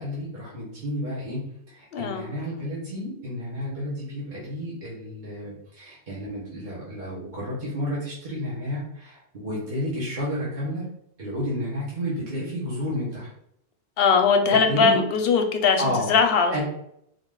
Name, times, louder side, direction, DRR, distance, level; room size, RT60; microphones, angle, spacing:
voice 1, 0.0-10.9 11.2-13.3 14.5-15.0 15.8-16.1 16.5-16.6, equal, 45° right, -8 dB, 1.4 m, -31 dB
voice 2, 1.9-2.3 14.0-16.6, left 5 dB, 65° left, 5 dB, 0.8 m, -20 dB
4.0 x 2.5 x 3.6 m, 0.73 s
omnidirectional pair, 1.1 m